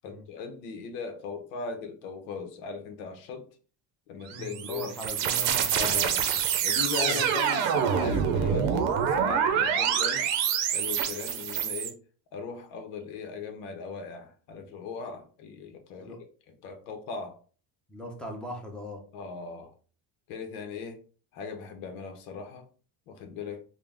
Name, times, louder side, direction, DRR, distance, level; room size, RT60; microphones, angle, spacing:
voice 1, 0.0-3.5 4.1-5.1 5.8-6.2 6.6-7.6 7.9-10.3 10.7-12.0 12.3-16.2 16.6-17.4 19.1-19.7 20.3-21.0 21.3-22.7 23.1-23.6, left 5 dB, 80° left, 1.0 m, -38 dB
voice 2, 4.3-6.1 7.1-7.2 16.0-16.2 17.9-19.0, equal, ahead, 0.7 m, -39 dB
sound 1, 4.3-11.9, right 8 dB, 75° right, 0.8 m, -26 dB
3.9 x 2.3 x 3.4 m
cardioid pair, 140°, 45 cm